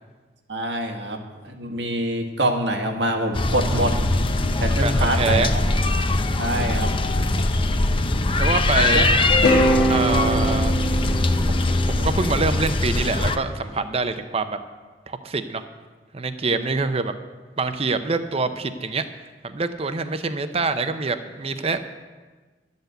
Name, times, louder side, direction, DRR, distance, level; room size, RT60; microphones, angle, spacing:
voice 1, 0.5-4.0 4.4-5.6 6.4-6.9 8.7-9.0 10.2-10.4, right 1 dB, 75° right, 4 dB, 1.6 m, -25 dB
sound 1, 3.3-13.4, left 2 dB, 30° left, 0.6 m, -22 dB
voice 2, 4.6-5.5 8.4-9.1 9.9-10.7 11.5-14.6 15.1-15.6 16.1-17.1 17.6-19.0 19.4-21.8, right 3 dB, 35° right, 9 dB, 0.7 m, -25 dB
sound 2, 9.3-13.5, right 1 dB, 55° left, 1.5 m, -23 dB
11.5 x 8.1 x 7.9 m, 1.3 s
head